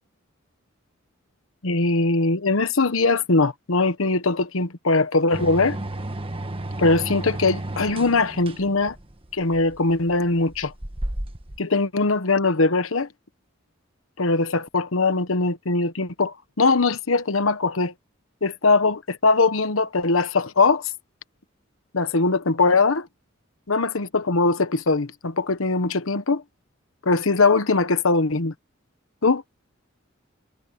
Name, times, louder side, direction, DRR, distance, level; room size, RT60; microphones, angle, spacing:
voice 1, 1.6-5.8 6.8-9.0 9.3-10.7 11.6-13.1 14.2-17.9 18.4-20.9 21.9-23.1 23.7-26.4 27.0-28.5 29.2-29.4, left 3 dB, 90° left, 1.2 m, -21 dB
sound 1, 5.3-11.6, right 1 dB, 25° right, 1.5 m, -33 dB
head